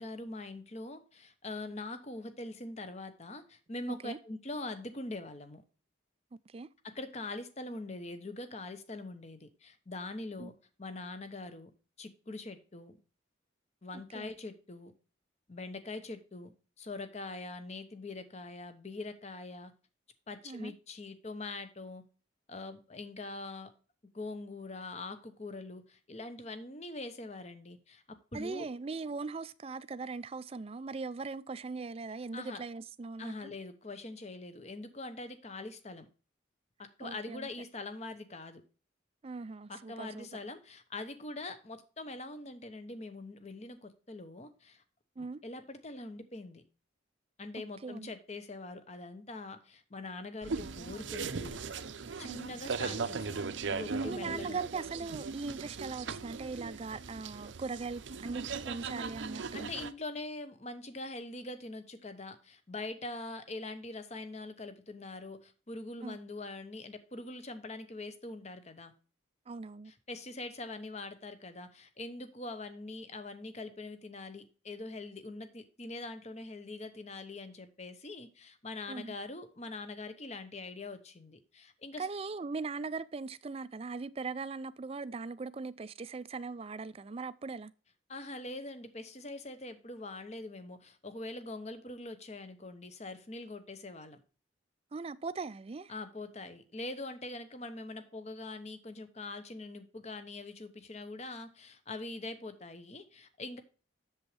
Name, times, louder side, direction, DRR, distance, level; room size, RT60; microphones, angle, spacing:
voice 1, 0.0-5.6 6.8-11.7 12.0-13.0 13.8-14.9 15.5-19.7 20.3-22.0 22.5-23.7 24.1-28.7 32.3-32.6 33.2-36.1 36.8-38.6 39.7-44.8 45.2-46.6 47.4-51.6 52.2-54.6 59.5-68.9 69.8-82.1 88.1-94.2 95.9-103.6, left 2 dB, 35° left, 1.0 m, -43 dB
voice 2, 28.3-33.3 37.0-37.5 39.2-40.3 45.2-45.4 47.8-48.1 52.2-52.5 54.0-59.7 66.0-66.2 69.5-69.9 78.9-79.1 82.0-87.7 94.9-95.9, right 4 dB, 30° right, 0.4 m, -40 dB
sound 1, 50.4-59.9, right 4 dB, 70° right, 0.6 m, -38 dB
7.9 x 7.2 x 3.2 m
head